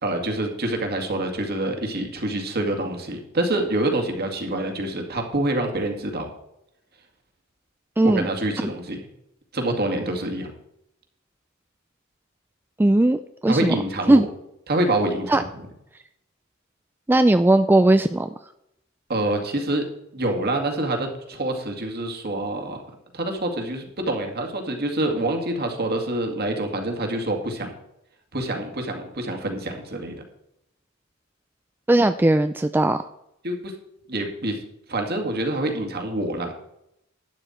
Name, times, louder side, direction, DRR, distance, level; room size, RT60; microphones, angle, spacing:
voice 1, 0.0-6.3 8.0-9.1 9.5-10.5 13.5-14.2 14.7-15.6 19.1-19.8 20.1-22.8 23.1-27.7 28.3-30.1 33.4-33.7 34.1-34.6 34.9-36.5, right 1 dB, 50° right, 3 dB, 2.1 m, -26 dB
voice 2, 8.0-8.3 12.8-13.7 14.1-14.3 15.3-15.4 17.1-18.3 31.9-33.0, right 1 dB, 10° right, 10 dB, 0.3 m, -18 dB
11.5 x 9.2 x 4.3 m, 0.81 s
head